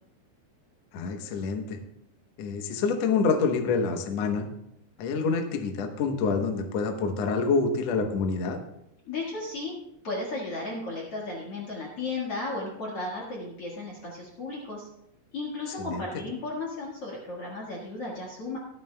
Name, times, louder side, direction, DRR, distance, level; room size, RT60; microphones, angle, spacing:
voice 1, 0.9-1.8 2.4-4.5 5.0-8.6 15.8-16.1, left 4 dB, 75° left, 5 dB, 1.5 m, -27 dB
voice 2, 9.1-9.8 10.0-14.9 15.3-18.6, left 2 dB, 50° left, -3 dB, 2.2 m, -34 dB
23.5 x 9.1 x 2.3 m, 0.81 s
omnidirectional pair, 4.5 m